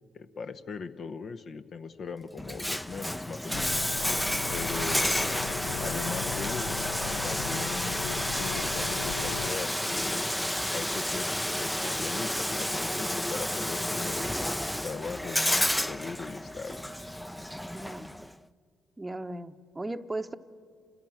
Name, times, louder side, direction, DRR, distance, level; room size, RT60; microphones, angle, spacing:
voice 1, 0.1-3.9 4.5-5.2 5.8-6.9 7.2-10.3 10.7-14.5 14.8-16.8, left 5 dB, 50° left, 9 dB, 0.8 m, -39 dB
Bathtub (filling or washing), 2.4-18.3, equal, 5° left, 0.5 m, -31 dB
sound 1, 3.5-9.5, left 10 dB, 65° left, 0.5 m, -38 dB
voice 2, 17.7-18.1 19.0-20.4, right 2 dB, 15° right, 10 dB, 0.9 m, -37 dB
29.5 x 13.5 x 7.6 m, 2.2 s
figure-of-eight pair, 45°, 0 cm